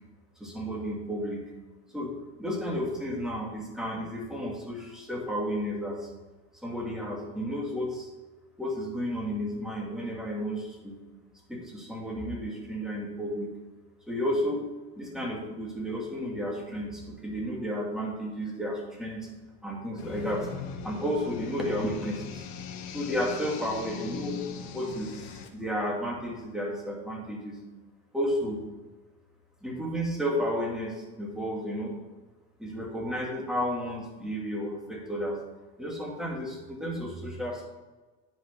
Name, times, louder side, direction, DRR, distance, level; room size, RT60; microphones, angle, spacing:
voice 1, 0.4-1.4 1.9-2.1 2.4-6.1 6.6-8.1 8.6-11.0 11.5-13.5 14.1-14.7 15.0-19.3 19.6-20.5 20.8-22.5 22.9-24.4 24.7-27.6 28.1-28.6 29.6-31.9 32.6-35.4 35.8-37.6, equal, ahead, -3 dB, 2.5 m, -32 dB
sound 1, 20.0-25.5, left 7 dB, 85° left, 1.3 m, -40 dB
10.0 x 5.5 x 5.2 m, 1.3 s
cardioid pair, 130°, 32 cm